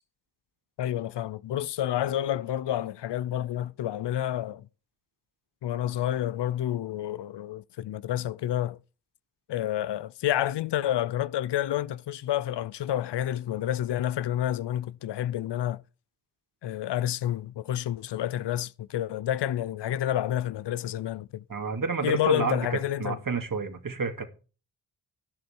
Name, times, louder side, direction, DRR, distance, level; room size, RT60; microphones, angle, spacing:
voice 1, 0.8-4.7 5.6-8.8 9.5-15.8 16.6-21.4 22.0-23.2, left 12 dB, 70° left, 0.7 m, -29 dB
voice 2, 21.5-24.3, right 5 dB, 50° right, 2.5 m, -30 dB
11.0 x 10.5 x 4.5 m
supercardioid pair, 40°, 43 cm